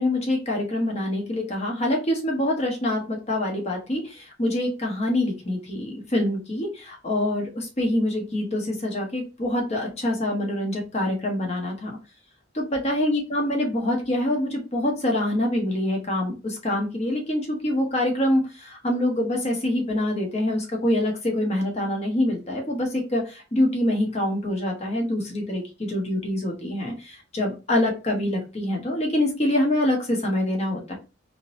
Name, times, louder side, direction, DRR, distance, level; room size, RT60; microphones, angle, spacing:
voice 1, 0.0-11.9 12.5-31.0, left 1 dB, 35° left, 0 dB, 1.1 m, -25 dB
3.8 x 2.8 x 2.6 m, 0.30 s
head